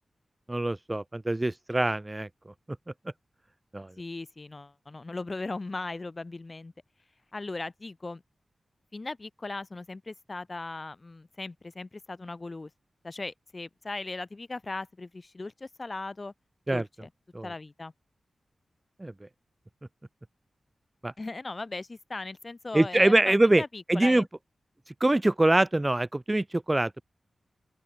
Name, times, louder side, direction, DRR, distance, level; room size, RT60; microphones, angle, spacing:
voice 1, 0.5-2.3 3.7-3.9 16.7-16.8 17.3-17.5 19.0-19.1 21.0-21.1 22.7-23.6 23.9-24.2 25.0-27.0, right 1 dB, 15° right, 0.3 m, -24 dB
voice 2, 4.0-6.7 7.3-8.2 8.9-12.7 13.0-16.3 16.7-17.1 17.4-17.9 21.2-24.3, left 3 dB, 30° left, 3.5 m, -38 dB
open air
wide cardioid pair, 120°, 0 cm